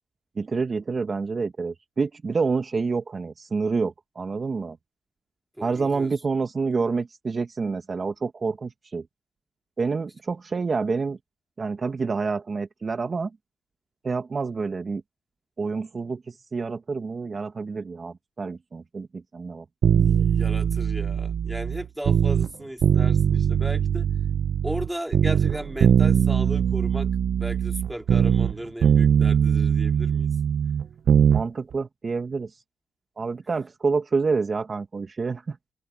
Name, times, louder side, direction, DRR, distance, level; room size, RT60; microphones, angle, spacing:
voice 1, 0.4-4.8 5.6-9.0 9.8-11.2 11.6-13.3 14.0-15.0 15.6-19.6 20.0-20.3 31.3-32.5 33.2-35.6, right 4 dB, 35° right, 1.6 m, -28 dB
voice 2, 5.6-6.1 20.0-24.1 24.6-27.1 27.4-30.3, right 1 dB, 5° right, 3.4 m, -35 dB
sound 1, 19.8-22.5 22.8-24.9 25.1-28.6 28.8-31.4 31.7-31.8, right 8 dB, 60° right, 0.9 m, -21 dB
cardioid pair, 90°, 0 cm